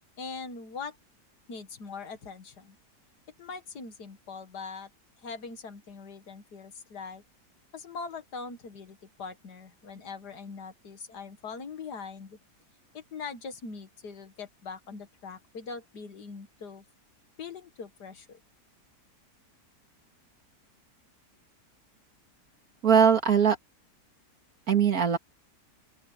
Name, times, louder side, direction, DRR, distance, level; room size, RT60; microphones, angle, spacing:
voice 1, 0.2-1.0 1.5-2.8 3.4-4.9 5.2-7.2 7.7-12.4 12.9-16.8 17.4-18.4, left 5 dB, 75° left, 2.2 m, -42 dB
voice 2, 22.8-23.6 24.7-25.2, right 7 dB, 60° right, 2.6 m, -21 dB
open air
omnidirectional pair, 1.8 m